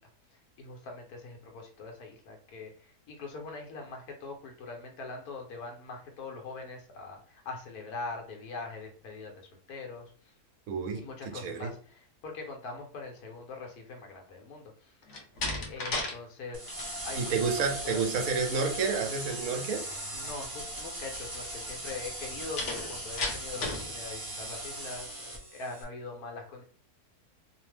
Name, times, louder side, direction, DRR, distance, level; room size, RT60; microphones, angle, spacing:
voice 1, 0.3-10.3 11.0-15.1 15.7-16.6 17.0-18.3 20.1-26.6, left 3 dB, 75° left, 2 dB, 1.2 m, -42 dB
voice 2, 10.7-11.0 11.3-11.7 17.1-19.8, right 5 dB, 70° right, 4 dB, 1.0 m, -30 dB
Slam, 15.1-16.2 16.5-16.9 22.6-23.9, left 2 dB, 55° left, 0.9 m, -34 dB
sound 1, 16.5-25.8, right 1 dB, 25° right, 0.4 m, -39 dB
2.9 x 2.0 x 3.2 m, 0.43 s
omnidirectional pair, 1.7 m